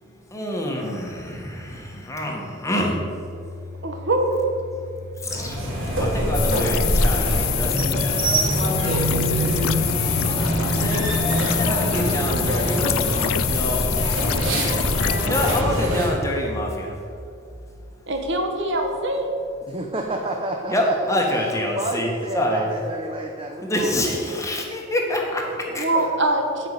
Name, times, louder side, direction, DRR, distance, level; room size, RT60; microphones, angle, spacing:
voice 1, 0.0-3.1 5.2-5.6 6.0-8.3 8.8-13.9 14.3-17.0 20.7-22.1 22.3-22.7 23.6-25.8, left 1 dB, 15° left, 0 dB, 1.5 m, -27 dB
Domestic sounds home sounds, 2.8-19.7, left 2 dB, 5° right, 2.8 m, -38 dB
voice 2, 3.8-4.3 18.1-19.3 25.8-26.7, right 1 dB, 60° right, 3 dB, 1.4 m, -23 dB
sound 1, 5.2-16.1, equal, 80° right, 2.8 m, -23 dB
sound 2, 6.3-15.6, left 15 dB, 80° left, 0.4 m, -27 dB
voice 3, 19.7-24.5 25.4-26.2, right 2 dB, 25° right, 2 dB, 0.7 m, -31 dB
9.2 x 5.8 x 8.4 m, 2.4 s
head